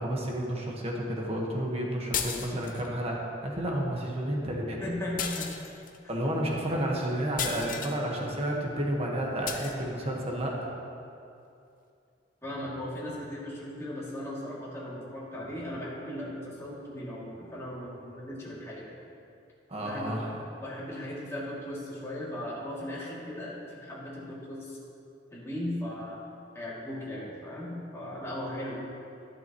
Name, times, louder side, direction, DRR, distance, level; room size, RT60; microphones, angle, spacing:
voice 1, 0.0-4.8 6.1-10.7 19.7-20.3, right 1 dB, 35° right, -2 dB, 1.5 m, -31 dB
sound 1, 2.1-2.9 5.2-6.0 7.4-8.0 9.5-9.7, left 7 dB, 50° left, 0.7 m, -34 dB
voice 2, 4.8-5.5 12.4-18.9 19.7-20.2 20.5-24.8 25.3-26.2 26.5-28.8, left 1 dB, 15° left, -7 dB, 2.6 m, -37 dB
12.0 x 11.5 x 3.1 m, 2.6 s
head